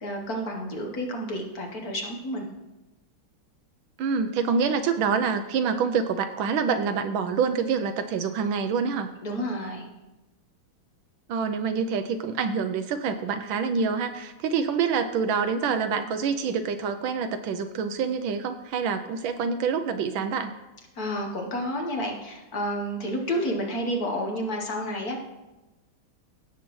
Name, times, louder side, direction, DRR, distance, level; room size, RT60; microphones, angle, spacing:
voice 1, 0.0-2.5 9.2-9.9 20.9-25.2, equal, 50° left, 1 dB, 1.4 m, -30 dB
voice 2, 4.0-9.1 11.3-20.5, right 6 dB, 75° right, 9 dB, 1.2 m, -26 dB
16.5 x 6.9 x 3.1 m, 1.0 s
omnidirectional pair, 2.4 m